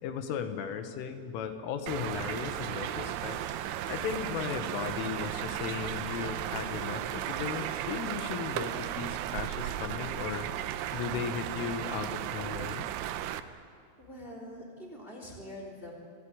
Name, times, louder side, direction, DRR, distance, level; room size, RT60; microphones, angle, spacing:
voice 1, 0.0-3.4 3.9-10.5 10.9-12.9, left 7 dB, 80° left, 7 dB, 3.9 m, -36 dB
sound 1, 1.9-13.4, right 12 dB, 80° right, 3.2 m, -35 dB
sound 2, 2.5-8.1, equal, 10° left, 3.5 m, -59 dB
voice 2, 14.0-15.9, left 1 dB, 15° right, 1 dB, 2.8 m, -44 dB
27.0 x 16.5 x 8.8 m, 2.3 s
omnidirectional pair, 5.7 m